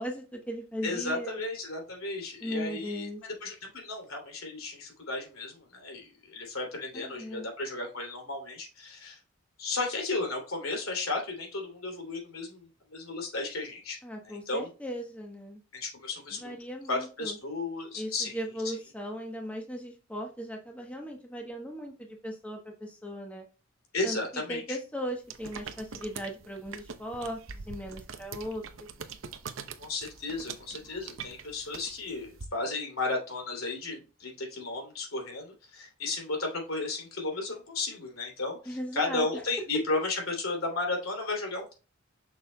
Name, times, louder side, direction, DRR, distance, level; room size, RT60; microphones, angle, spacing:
voice 1, 0.0-1.4 2.4-3.2 6.9-7.5 14.0-15.6 16.3-17.4 17.9-23.4 24.0-24.2 24.5-28.9 38.6-39.3, equal, 5° left, 1 dB, 1.0 m, -38 dB
voice 2, 0.8-3.1 3.4-9.2 9.6-14.0 14.2-14.7 15.7-16.5 16.9-18.4 23.9-24.8 29.8-41.7, left 3 dB, 90° left, 1 dB, 2.8 m, -34 dB
sound 1, 25.3-32.4, right 6 dB, 70° right, 0.7 m, -43 dB
7.4 x 6.3 x 2.2 m, 0.32 s
head